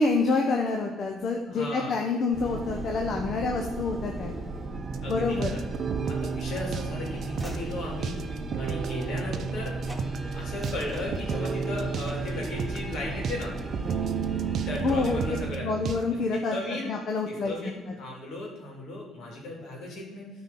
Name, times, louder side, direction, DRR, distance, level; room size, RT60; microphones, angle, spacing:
voice 1, 0.0-4.3 5.1-5.5 14.8-15.2 15.6-16.5 16.9-17.5, left 3 dB, 55° left, 2 dB, 1.0 m, -27 dB
voice 2, 1.5-1.9 5.0-5.6 6.0-8.2 8.6-9.8 10.3-13.5 14.7-15.7 16.3-16.8 17.3-20.3, left 2 dB, 70° left, -2 dB, 3.2 m, -36 dB
sound 1, 2.3-15.5, right 3 dB, 35° right, 1.4 m, -36 dB
sound 2, 4.8-16.0, right 6 dB, 60° right, 0.6 m, -33 dB
Train / Slam, 6.0-9.6 9.8-10.1 10.4-11.6 12.0-12.4, right 1 dB, 10° right, 2.7 m, -46 dB
12.0 x 4.7 x 4.3 m, 1.2 s
cardioid pair, 90°, 0 cm